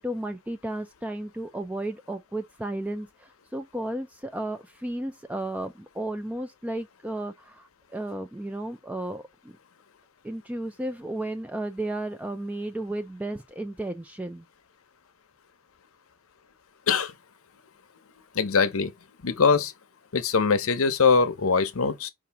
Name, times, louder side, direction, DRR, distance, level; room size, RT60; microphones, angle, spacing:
voice 1, 0.0-3.1 3.5-9.5 10.2-14.4, right 1 dB, 5° right, 0.4 m, -33 dB
voice 2, 18.3-18.9 19.2-19.7 20.1-22.1, left 5 dB, 85° left, 0.8 m, -22 dB
4.9 x 2.8 x 3.4 m
head